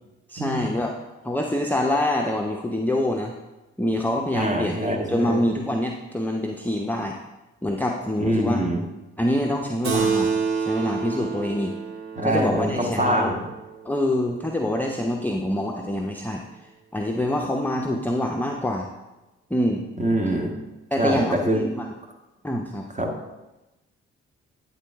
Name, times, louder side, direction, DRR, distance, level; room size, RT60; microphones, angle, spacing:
voice 1, 0.3-1.0 1.2-3.3 3.8-7.2 7.6-8.7 9.2-11.8 12.2-13.3 13.8-16.4 16.9-18.9 19.5-19.8 20.9-21.9 22.4-22.9, left 1 dB, 5° left, 1 dB, 0.7 m, -25 dB
voice 2, 4.3-5.4 8.2-8.8 12.2-13.4 20.0-20.5 21.0-21.6 23.0-23.1, right 1 dB, 20° right, 2 dB, 1.6 m, -24 dB
Keyboard (musical), 9.8-14.7, right 5 dB, 55° right, 1.9 m, -29 dB
9.2 x 4.0 x 4.7 m, 1.0 s
figure-of-eight pair, 40°, 33 cm